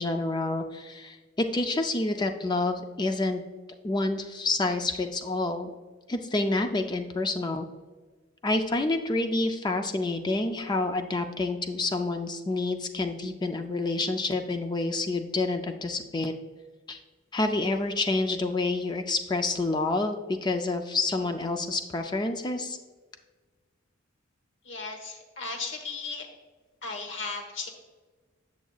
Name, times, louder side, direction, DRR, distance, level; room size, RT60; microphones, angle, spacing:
voice 1, 0.0-3.4 3.8-5.7 6.1-7.7 8.4-16.3 16.9-17.0 17.3-22.8, left 2 dB, 20° left, 6 dB, 0.3 m, -28 dB
voice 2, 24.6-26.3 26.8-27.7, left 4 dB, 55° left, 3 dB, 1.1 m, -36 dB
8.2 x 7.0 x 2.3 m, 1.3 s
head